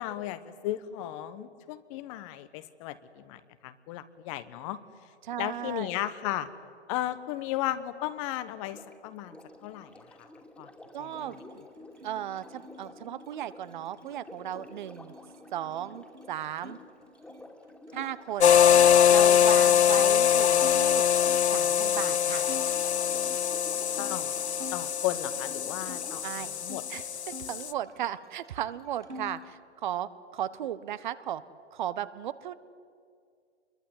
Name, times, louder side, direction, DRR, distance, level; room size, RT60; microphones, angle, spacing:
voice 1, 0.0-4.8 5.4-6.5 6.9-10.3 10.6-10.7 11.0-11.3 24.0-24.5 24.7-26.3 26.5-26.8, left 13 dB, 30° left, 13 dB, 1.2 m, -35 dB
voice 2, 5.2-5.9 10.9-11.4 12.0-15.1 15.5-16.8 17.9-18.5 19.1-21.1 21.5-22.5 26.2-26.5 26.9-27.1 27.4-31.4 31.7-32.5, right 11 dB, 45° right, 15 dB, 1.2 m, -36 dB
Sink (filling or washing), 8.6-26.4 27.6-27.7, left 1 dB, 5° left, 2.6 m, -50 dB
sound 1, 11.0-16.8 17.1-18.1 18.7-21.5 22.0-22.1 22.4-24.8 25.2-26.9 27.2-28.4 28.6-29.5, left 1 dB, 85° right, 2.9 m, -48 dB
sound 2, 18.4-27.7, left 9 dB, 70° left, 0.8 m, -23 dB
27.0 x 22.5 x 9.6 m, 2.2 s
figure-of-eight pair, 125°, 34 cm